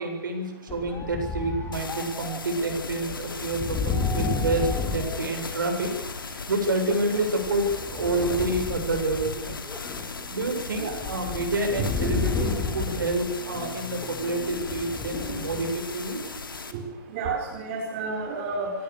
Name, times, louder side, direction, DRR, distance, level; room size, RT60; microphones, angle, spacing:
voice 1, 0.0-5.9 6.3-9.6 10.3-16.2, right 2 dB, 60° right, 4 dB, 7.5 m, -28 dB
sound 1, 0.7-6.0 6.8-15.7, left 4 dB, 10° left, 3.6 m, -32 dB
sound 2, 1.7-16.7, left 4 dB, 65° left, 3.2 m, -37 dB
voice 2, 17.1-18.7, right 4 dB, 35° right, 0 dB, 4.9 m, -31 dB
27.5 x 22.0 x 6.8 m, 1.0 s
figure-of-eight pair, 130°, 12 cm